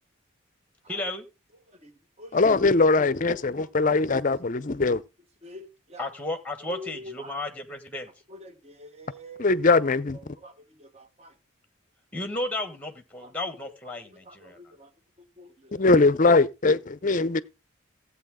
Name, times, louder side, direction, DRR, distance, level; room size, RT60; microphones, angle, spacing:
voice 1, 0.9-1.3 6.0-8.1 12.1-14.6, left 2 dB, 5° left, 1.4 m, -33 dB
voice 2, 1.7-2.4 3.3-3.9 5.4-6.1 6.6-7.4 8.3-9.5 10.1-11.4 13.2-13.3 13.6-13.7 14.0-14.9 15.2-15.9, left 1 dB, 30° right, 1.2 m, -46 dB
voice 3, 2.3-5.0 9.4-10.2 15.7-17.4, left 3 dB, 40° left, 0.5 m, -21 dB
15.0 x 8.3 x 3.7 m
head